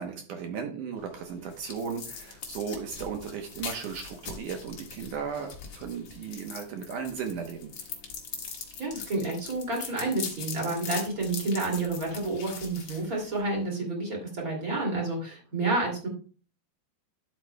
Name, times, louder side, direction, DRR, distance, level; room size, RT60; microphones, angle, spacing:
voice 1, 0.0-7.7, right 6 dB, 75° right, 4 dB, 1.9 m, -36 dB
sound 1, 1.0-13.6, left 6 dB, 55° left, 1.7 m, -42 dB
voice 2, 8.8-16.1, right 2 dB, 25° right, -1 dB, 2.2 m, -30 dB
11.5 x 7.9 x 2.2 m, 0.39 s
omnidirectional pair, 4.8 m